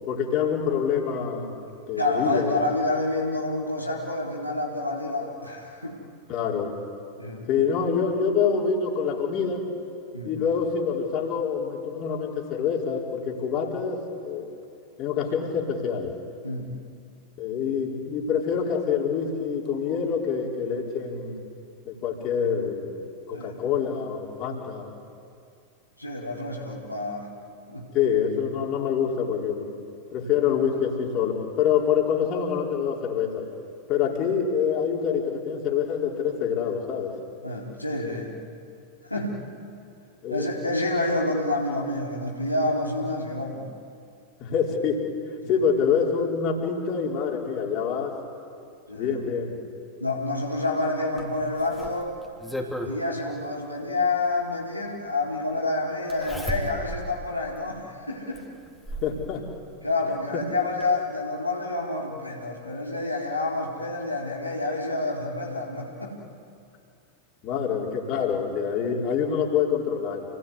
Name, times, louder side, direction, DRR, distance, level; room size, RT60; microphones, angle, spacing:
voice 1, 0.1-1.5 1.9-2.6 6.3-6.8 7.5-9.6 10.2-14.5 15.0-16.1 17.4-21.4 21.8-24.9 27.9-29.6 30.1-33.5 33.9-37.1 40.2-40.5 44.4-45.0 45.5-48.2 48.9-49.6 59.0-59.4 60.3-60.4 67.4-70.2, left 7 dB, 40° left, -1 dB, 4.9 m, -26 dB
voice 2, 2.0-6.0 7.2-7.5 10.1-10.3 16.4-16.8 23.3-23.6 26.0-27.3 27.7-27.9 37.4-38.3 39.0-39.4 40.3-43.7 45.4-45.6 48.9-49.2 50.0-52.1 52.9-58.4 59.8-66.2, left 2 dB, 85° left, -3 dB, 4.0 m, -28 dB
Zipper (clothing), 51.2-53.0 54.4-54.5 56.1-57.1 57.6-57.7 58.3-59.2 60.4-60.5 60.8-60.9, equal, ahead, 3.8 m, -34 dB
29.5 x 19.0 x 9.9 m, 2.4 s
figure-of-eight pair, 90°, 0 cm